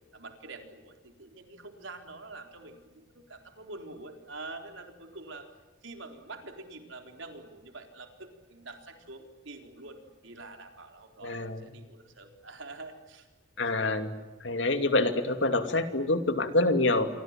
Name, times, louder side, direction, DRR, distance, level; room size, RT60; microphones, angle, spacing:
voice 1, 0.1-5.5 5.8-13.3, right 2 dB, 75° right, 4 dB, 4.1 m, -46 dB
voice 2, 11.2-11.7 13.6-14.1 14.4-17.1, left 2 dB, 70° left, 7 dB, 2.6 m, -26 dB
28.0 x 24.5 x 7.6 m, 1.2 s
head